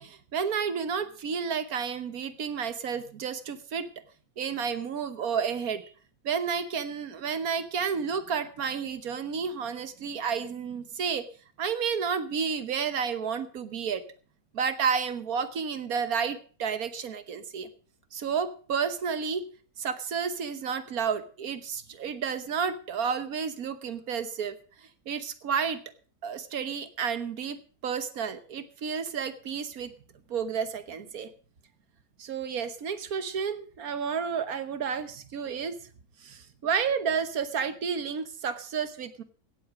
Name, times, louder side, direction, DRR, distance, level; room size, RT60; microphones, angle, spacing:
voice 1, 0.0-3.9 4.4-5.9 6.2-11.2 11.6-14.0 14.5-17.7 18.1-19.4 19.8-25.8 26.2-29.9 30.3-31.3 32.2-35.8 36.2-39.2, right 6 dB, 80° right, 12 dB, 1.6 m, -31 dB
16.5 x 8.1 x 6.0 m, 0.41 s
omnidirectional pair, 1.5 m